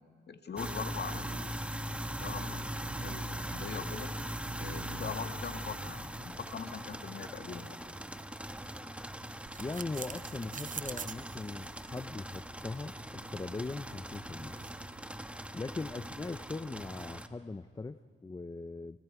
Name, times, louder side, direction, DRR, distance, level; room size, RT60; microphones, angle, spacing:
voice 1, 0.3-1.6 2.1-4.1 4.6-8.0, left 6 dB, 55° left, 7 dB, 1.9 m, -42 dB
sound 1, 0.6-17.3, right 1 dB, 5° right, 1.2 m, -41 dB
sound 2, 9.5-15.0, right 6 dB, 40° right, 0.7 m, -47 dB
voice 2, 9.6-14.6 15.5-19.0, left 3 dB, 20° left, 12 dB, 0.6 m, -40 dB
29.5 x 29.5 x 4.8 m, 2.2 s
cardioid pair, 95°, 20 cm